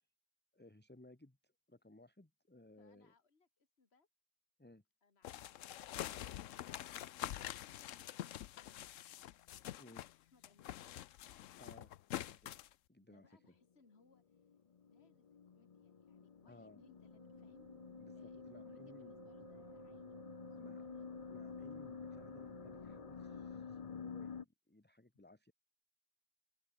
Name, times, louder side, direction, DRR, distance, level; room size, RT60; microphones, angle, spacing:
voice 1, 0.5-3.1 4.6-4.8 9.8-10.1 11.6-11.9 12.3-12.6 12.9-13.2 16.5-16.8 18.0-19.1 20.5-20.8 21.3-25.5, left 2 dB, 10° left, 1.3 m, -61 dB
voice 2, 2.8-4.1 5.0-6.2 6.5-9.3 10.2-10.8 13.0-14.5 14.8-17.7 18.1-21.7, left 4 dB, 55° left, 2.4 m, -71 dB
sound 1, 5.2-10.2 10.4-12.7, left 12 dB, 85° left, 1.0 m, -46 dB
sound 2, 14.1-24.4, left 6 dB, 40° left, 0.6 m, -50 dB
Wind instrument woodwind instrument, 16.9-24.0, right 5 dB, 40° right, 1.3 m, -58 dB
open air
omnidirectional pair, 1.3 m